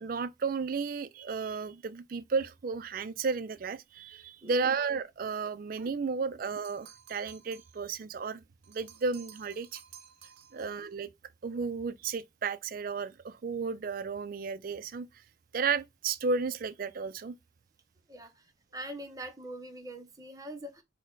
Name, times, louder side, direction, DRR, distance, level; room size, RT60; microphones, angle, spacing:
voice 1, 0.0-9.8 10.5-11.1 11.4-15.2 15.5-17.3, right 5 dB, 45° right, 0.4 m, -33 dB
voice 2, 4.4-4.7 10.5-10.7 18.1-18.5 18.7-20.8, right 1 dB, 20° right, 0.7 m, -43 dB
sound 1, 6.6-7.9 8.6-10.8, right 8 dB, 75° right, 0.7 m, -54 dB
6.3 x 2.1 x 3.7 m
head